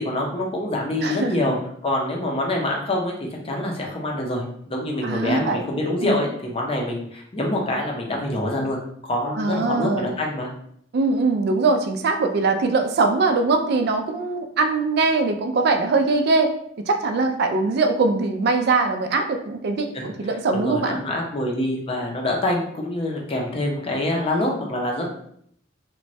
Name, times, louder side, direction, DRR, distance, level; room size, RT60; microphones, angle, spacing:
voice 1, 0.0-1.6 1.8-8.8 9.0-10.5 19.9-20.1 20.5-25.1, left 1 dB, 30° left, 0 dB, 0.6 m, -25 dB
voice 2, 1.0-1.4 5.0-5.6 6.0-6.2 9.4-10.1 10.9-16.5 16.9-21.0, right 3 dB, 60° right, 6 dB, 0.3 m, -22 dB
3.0 x 2.2 x 2.6 m, 0.67 s
head